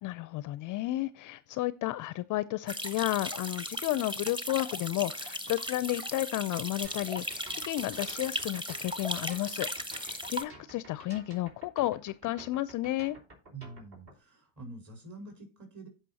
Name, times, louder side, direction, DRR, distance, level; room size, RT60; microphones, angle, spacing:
voice 1, 0.0-13.2, left 16 dB, 40° left, 0.5 m, -32 dB
sound 1, 2.7-10.4, equal, 10° right, 1.0 m, -37 dB
sound 2, 6.8-14.2, right 2 dB, 50° right, 4.5 m, -52 dB
voice 2, 13.5-15.9, right 3 dB, 35° right, 4.1 m, -46 dB
15.5 x 5.4 x 2.8 m
hypercardioid pair, 85°, 50 cm